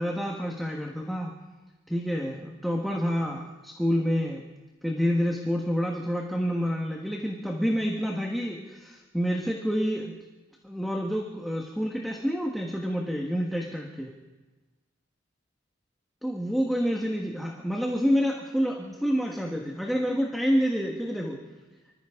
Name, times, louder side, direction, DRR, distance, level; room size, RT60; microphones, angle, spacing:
voice 1, 0.0-1.4 1.9-4.4 4.8-10.2 10.6-14.1 16.2-21.4, equal, ahead, -1 dB, 1.3 m, -28 dB
25.0 x 14.5 x 3.7 m, 1.2 s
head